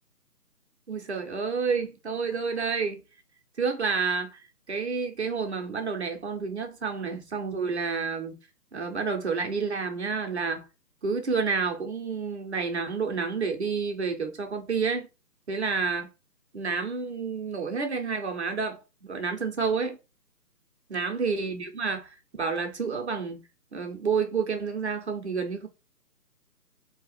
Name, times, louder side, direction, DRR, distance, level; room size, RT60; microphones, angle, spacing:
voice 1, 0.9-3.0 3.6-8.4 8.7-10.6 11.0-15.1 15.5-16.1 16.5-20.0 20.9-23.4 23.7-25.7, right 5 dB, 45° right, 0.7 m, -29 dB
2.8 x 2.3 x 4.1 m
figure-of-eight pair, 160°, 49 cm